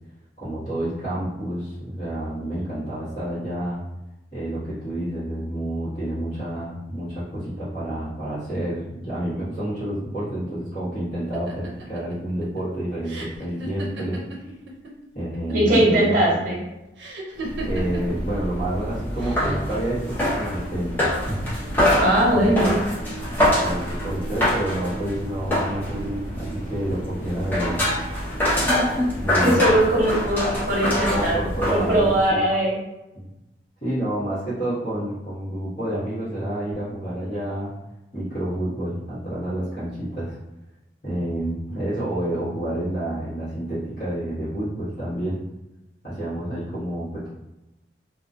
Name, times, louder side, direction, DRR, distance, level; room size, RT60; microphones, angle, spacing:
voice 1, 0.4-3.8 4.3-14.2 15.1-16.4 17.4-21.8 22.3-22.7 23.2-27.9 29.1-29.6 31.1-32.5 33.1-33.3 33.8-37.7 38.1-40.4 41.0-45.4 46.0-47.3, right 1 dB, 45° left, -14 dB, 1.1 m, -29 dB
sound 1, 11.3-14.9 15.2-15.9 17.0-18.2 19.2-19.7, right 2 dB, 80° right, 0.5 m, -36 dB
voice 2, 15.5-16.6 21.9-22.8 28.6-29.1 29.4-31.4 31.7-32.8, right 1 dB, 50° right, -4 dB, 0.8 m, -20 dB
sound 2, 17.4-32.3, left 1 dB, 10° left, 0.6 m, -25 dB
2.3 x 2.2 x 2.5 m, 0.96 s
head